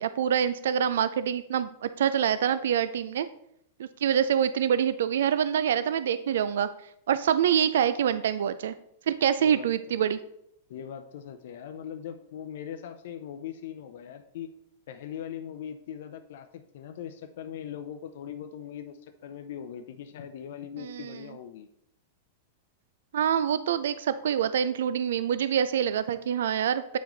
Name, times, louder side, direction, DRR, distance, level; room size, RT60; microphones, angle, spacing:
voice 1, 0.0-3.3 3.8-6.7 7.1-8.7 9.1-10.2 20.8-21.2 23.1-27.0, right 9 dB, 75° right, 13 dB, 0.3 m, -26 dB
voice 2, 9.4-9.9 10.7-14.5 14.9-21.7, left 9 dB, 65° left, 8 dB, 0.5 m, -40 dB
8.2 x 5.0 x 3.8 m, 0.74 s
hypercardioid pair, 120°, 0 cm